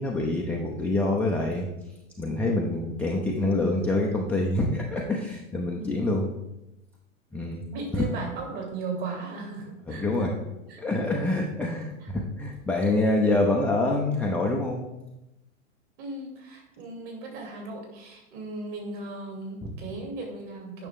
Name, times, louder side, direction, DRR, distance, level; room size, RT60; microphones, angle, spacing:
voice 1, 0.0-1.7 2.2-6.3 7.3-7.6 7.9-8.1 9.9-10.4 10.8-14.9 19.6-19.7, left 2 dB, 5° left, -3 dB, 0.4 m, -26 dB
voice 2, 7.7-10.3 10.7-10.8 12.0-12.1 16.0-20.9, right 3 dB, 45° right, 0 dB, 3.1 m, -37 dB
9.2 x 5.9 x 3.6 m, 0.93 s
hypercardioid pair, 120°, 41 cm